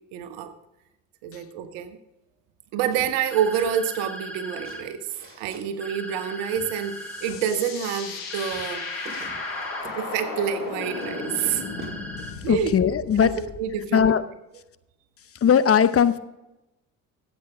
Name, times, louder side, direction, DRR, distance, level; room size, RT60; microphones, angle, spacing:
voice 1, 0.1-0.5 1.2-2.0 2.7-5.1 5.4-8.8 10.0-11.6 12.4-12.7 13.2-14.1, right 8 dB, 75° right, 9 dB, 1.3 m, -27 dB
sound 1, 2.9-3.8 4.1-5.6 6.2-7.4 8.1-10.0 10.5-12.0, right 2 dB, 30° right, 3.9 m, -45 dB
sound 2, 3.3-4.8 5.8-7.3 8.3-9.8 10.8-12.3, right 1 dB, 5° left, 2.5 m, -38 dB
sound 3, 6.5-13.7, left 4 dB, 70° left, 4.3 m, -36 dB
voice 2, 12.5-13.3 13.9-14.2 15.4-16.2, left 8 dB, 35° left, 13 dB, 0.7 m, -19 dB
14.5 x 8.2 x 3.5 m, 0.94 s
hypercardioid pair, 60°, 40 cm